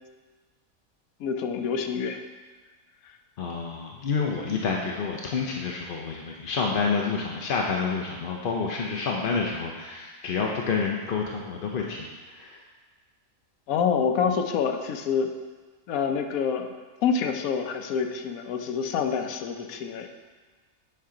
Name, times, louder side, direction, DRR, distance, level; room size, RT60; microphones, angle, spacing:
voice 1, 1.2-2.2 13.7-15.3 15.9-16.7 17.0-20.1, left 6 dB, 80° left, 5 dB, 1.1 m, -27 dB
voice 2, 3.4-12.6, left 5 dB, 55° left, 0 dB, 0.6 m, -29 dB
9.0 x 5.6 x 3.8 m, 1.4 s
omnidirectional pair, 1.5 m